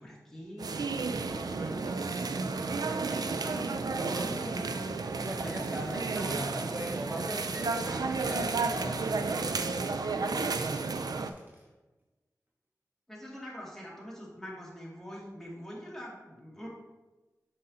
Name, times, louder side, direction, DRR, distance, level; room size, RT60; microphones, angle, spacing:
voice 1, 0.0-5.1 5.4-6.6 13.1-16.7, equal, 5° left, -5 dB, 2.2 m, -44 dB
sound 1, 0.6-11.3, right 4 dB, 75° right, 0.4 m, -32 dB
voice 2, 5.2-11.7, right 1 dB, 30° right, -1 dB, 0.8 m, -40 dB
7.4 x 5.4 x 2.8 m, 1.1 s
wide cardioid pair, 55°, 7 cm